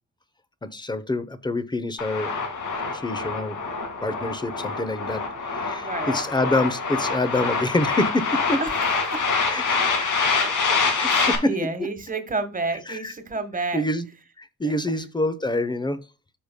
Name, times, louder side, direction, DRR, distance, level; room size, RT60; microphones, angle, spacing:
voice 1, 0.6-2.4 2.9-3.6 4.0-5.2 5.5-8.6 9.5-10.2 10.9-11.5 12.9-13.1 13.7-14.1 14.4-16.0, left 1 dB, 15° left, 0.8 m, -26 dB
sound 1, 2.0-11.4, left 5 dB, 80° left, 2.2 m, -25 dB
voice 2, 5.8-6.2 8.6-9.3 10.1-10.5 11.1-13.8 14.6-14.7, right 3 dB, 25° right, 1.4 m, -31 dB
13.0 x 5.2 x 2.2 m
wide cardioid pair, 150°, 31 cm